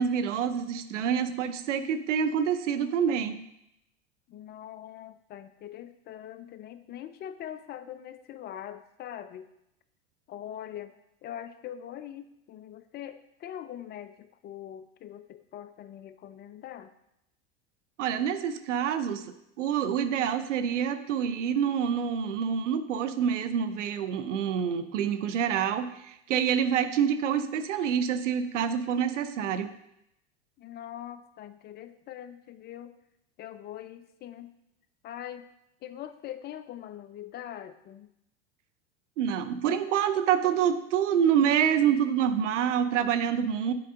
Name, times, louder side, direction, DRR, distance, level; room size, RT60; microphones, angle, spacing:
voice 1, 0.0-3.4 18.0-19.3 19.6-29.7 39.2-43.7, right 8 dB, 80° right, 11 dB, 0.7 m, -27 dB
voice 2, 4.3-9.5 10.3-10.9 11.2-16.9 30.6-33.0 33.4-34.6 35.0-35.5 35.8-38.1, left 11 dB, 30° left, 12 dB, 0.4 m, -42 dB
7.9 x 4.6 x 3.6 m, 0.82 s
hypercardioid pair, 90°, 36 cm